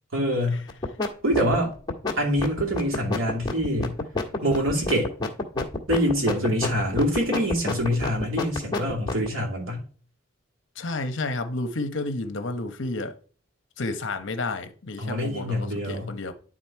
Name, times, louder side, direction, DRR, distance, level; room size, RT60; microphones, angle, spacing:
voice 1, 0.1-0.7 1.2-1.7 2.2-4.0 4.4-5.1 5.9-9.8 15.0-16.2, equal, 80° right, 2.8 m, -25 dB
sound 1, 0.7-1.1 1.3-9.3, left 3 dB, 20° left, 1.6 m, -28 dB
voice 2, 10.8-13.1 13.8-16.3, left 2 dB, 65° left, 1.0 m, -31 dB
11.0 x 3.9 x 4.6 m
head